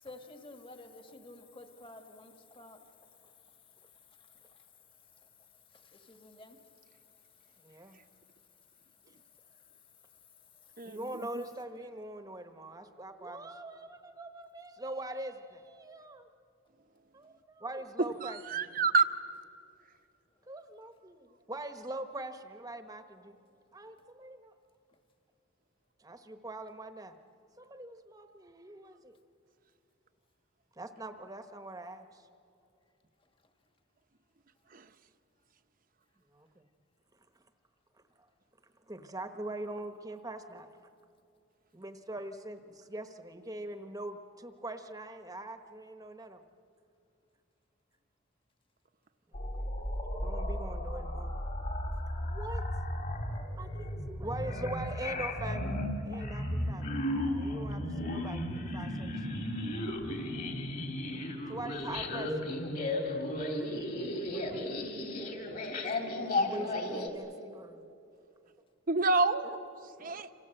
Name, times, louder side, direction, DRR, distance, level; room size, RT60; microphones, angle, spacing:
voice 1, 0.0-2.8 5.8-6.6 69.4-69.6, left 2 dB, 25° left, 5 dB, 1.7 m, -50 dB
voice 2, 7.6-8.0 10.8-16.3 17.1-18.4 20.4-23.4 23.7-24.5 26.0-27.2 27.6-29.2 30.7-32.3 36.3-36.6 37.1-37.4 38.2-38.3 38.6-40.7 41.7-46.4 49.3-49.7 50.1-51.3 52.2-52.6 53.6-57.0 57.3-59.3 61.5-62.4 64.3-64.8 65.8-65.9 66.2-67.9 70.0-70.3, right 1 dB, 15° right, 7 dB, 1.1 m, -43 dB
voice 3, 18.2-19.1 34.7-34.8 68.9-69.6 70.0-70.3, right 3 dB, 40° right, 8 dB, 0.9 m, -27 dB
sound 1, 49.3-67.1, left 1 dB, 45° left, 3.1 m, -34 dB
28.0 x 27.0 x 7.9 m, 2.6 s
head